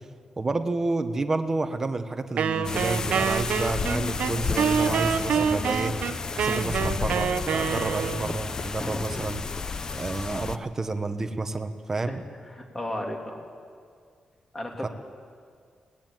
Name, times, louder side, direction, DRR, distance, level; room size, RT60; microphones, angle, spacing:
voice 1, 0.4-5.9 6.4-9.4 10.0-12.2 14.8-14.9, right 3 dB, 20° right, 8 dB, 1.2 m, -30 dB
Wind instrument woodwind instrument, 2.4-8.4, right 7 dB, 85° right, 1.0 m, -27 dB
sound 1, 2.6-10.6, left 4 dB, 30° left, 0.7 m, -31 dB
voice 2, 12.5-13.3 14.5-14.9, left 1 dB, 15° left, 1 dB, 3.1 m, -34 dB
25.0 x 18.5 x 9.2 m, 2.2 s
wide cardioid pair, 170°, 2 cm